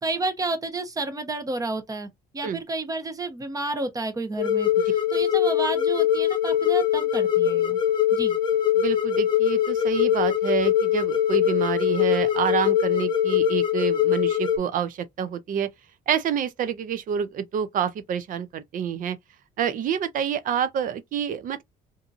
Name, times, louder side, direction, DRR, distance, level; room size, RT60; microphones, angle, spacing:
voice 1, 0.0-7.8 8.1-8.4, right 2 dB, 20° right, 0.8 m, -31 dB
sound 1, 4.4-14.6, left 10 dB, 30° left, 0.8 m, -22 dB
voice 2, 8.8-15.7 16.1-19.2 19.6-21.6, right 8 dB, 55° right, 0.5 m, -28 dB
2.7 x 2.6 x 2.4 m
cardioid pair, 110°, 17 cm